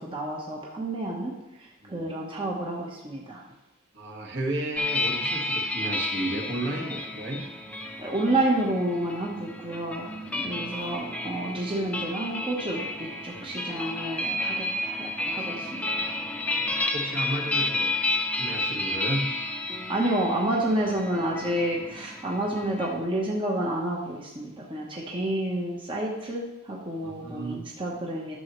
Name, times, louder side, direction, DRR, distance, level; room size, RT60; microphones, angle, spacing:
voice 1, 0.0-1.3 1.6-3.4 8.0-10.1 10.4-16.1 19.9-28.4, right 1 dB, 25° right, -2 dB, 1.0 m, -29 dB
voice 2, 3.9-7.5 10.2-10.5 13.3-13.5 16.5-17.9 18.3-19.4 27.0-27.6, right 1 dB, 50° right, 0 dB, 1.6 m, -33 dB
sound 1, 4.8-23.0, left 1 dB, 5° left, 0.5 m, -31 dB
12.0 x 6.9 x 3.1 m, 0.99 s
head